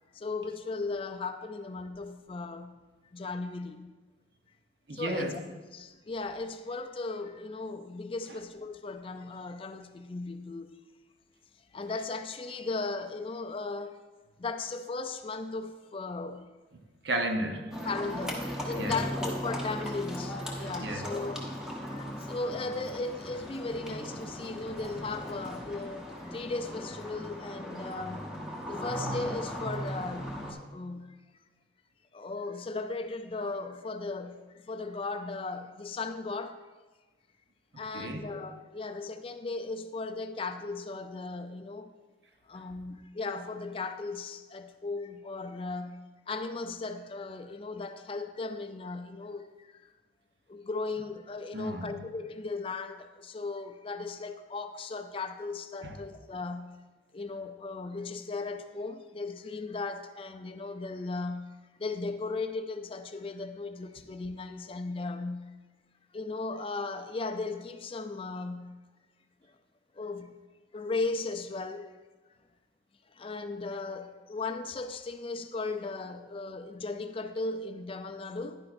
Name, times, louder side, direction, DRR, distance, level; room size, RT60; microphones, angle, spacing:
voice 1, 0.1-2.8 3.1-3.9 4.9-5.4 5.7-10.7 11.7-14.0 14.4-16.5 17.8-21.4 21.8-28.3 28.7-31.2 32.1-36.6 37.8-41.9 42.5-49.8 50.5-56.8 57.1-65.5 66.1-68.8 69.9-70.4 70.7-72.0 73.1-78.6, left 3 dB, 30° left, 0.4 m, -37 dB
voice 2, 4.9-5.4 16.7-17.8 18.8-19.0 20.8-21.1 37.7-38.3 51.5-52.0 55.8-56.0, right 1 dB, 65° right, 0.9 m, -34 dB
Livestock farm animals working animals, 17.7-30.5, equal, 5° right, 1.0 m, -37 dB
10.5 x 10.0 x 2.6 m
head